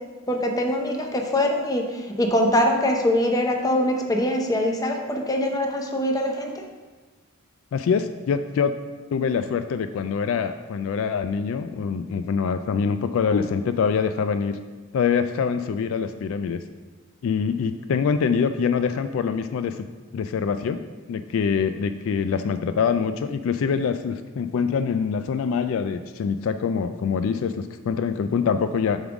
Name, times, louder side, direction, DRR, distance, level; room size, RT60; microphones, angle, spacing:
voice 1, 0.3-6.6, left 1 dB, 15° left, 2 dB, 0.7 m, -23 dB
voice 2, 7.7-8.8 9.1-14.6 14.9-16.6 17.2-19.9 20.1-20.8 21.1-29.0, left 6 dB, 65° left, 10 dB, 0.3 m, -24 dB
7.2 x 3.7 x 5.9 m, 1.3 s
head